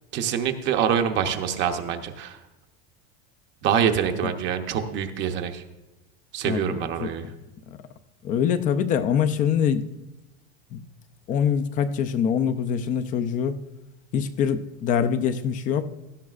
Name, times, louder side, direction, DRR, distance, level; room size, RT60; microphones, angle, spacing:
voice 1, 0.1-2.4 3.6-5.6 6.3-7.3, right 8 dB, 40° right, 6 dB, 0.8 m, -25 dB
voice 2, 6.4-7.1 7.7-7.8 8.2-9.9 10.7-10.8 11.3-13.6 14.1-15.9, left 8 dB, 25° left, 12 dB, 0.5 m, -24 dB
17.0 x 13.5 x 2.4 m, 0.99 s
cardioid pair, 170°, 30 cm